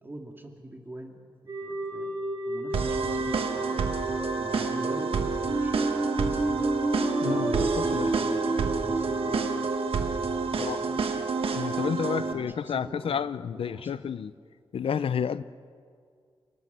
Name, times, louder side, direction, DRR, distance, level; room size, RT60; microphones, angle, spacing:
voice 1, 0.0-1.2 1.6-2.2 2.5-3.7 4.3-6.5 7.2-9.4 10.4-13.2 13.5-14.1, right 2 dB, 20° right, 3 dB, 2.2 m, -43 dB
sound 1, 1.5-10.7, right 2 dB, 40° right, 4.4 m, -31 dB
sound 2, 2.7-12.3, right 4 dB, 90° right, 1.4 m, -29 dB
voice 2, 7.2-8.1 10.6-10.8 11.5-14.3 14.7-15.4, left 7 dB, 80° left, 15 dB, 0.6 m, -30 dB
29.0 x 18.5 x 6.7 m, 2.2 s
wide cardioid pair, 170°, 9 cm